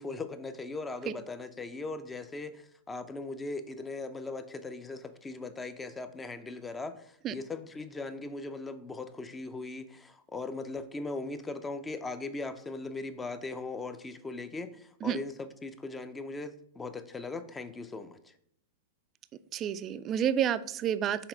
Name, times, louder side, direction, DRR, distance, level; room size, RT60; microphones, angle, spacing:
voice 1, 0.0-18.3, left 3 dB, 15° left, 11 dB, 0.6 m, -39 dB
voice 2, 19.5-21.3, right 9 dB, 30° right, 14 dB, 0.3 m, -29 dB
5.8 x 4.2 x 3.9 m, 0.68 s
hypercardioid pair, 105°, 0 cm